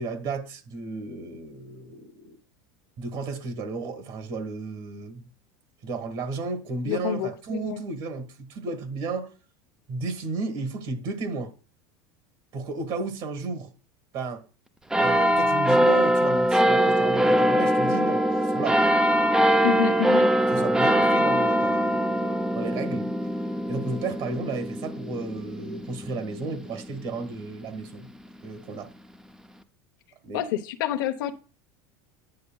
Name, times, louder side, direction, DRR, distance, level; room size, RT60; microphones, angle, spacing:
voice 1, 0.0-2.4 3.0-5.3 5.8-9.3 9.9-11.5 12.5-13.7 14.1-14.4 15.0-18.8 20.5-23.1 23.7-28.1 28.4-28.9 30.2-30.4, right 3 dB, 50° right, 1.6 m, -33 dB
voice 2, 6.8-7.8 19.6-20.3 30.3-31.3, left 10 dB, 85° left, 0.9 m, -28 dB
sound 1, 14.9-27.8 28.4-28.5, equal, 5° right, 0.5 m, -23 dB
9.6 x 6.8 x 2.3 m
supercardioid pair, 135°, 11 cm